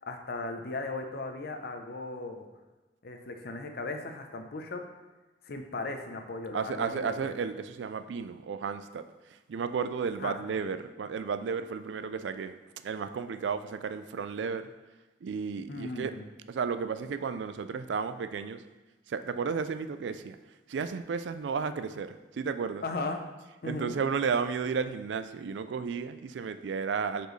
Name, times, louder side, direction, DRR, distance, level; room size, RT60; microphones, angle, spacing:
voice 1, 0.0-2.5 3.0-4.8 5.4-7.3 10.2-10.3 15.7-16.2 22.8-23.2 23.6-23.9, left 3 dB, 60° left, 5 dB, 0.7 m, -37 dB
voice 2, 6.5-14.7 15.2-16.2 16.5-18.6 19.1-20.4 20.7-22.8 23.6-27.3, right 5 dB, 80° right, 11 dB, 0.4 m, -33 dB
7.8 x 4.4 x 3.2 m, 1.2 s
head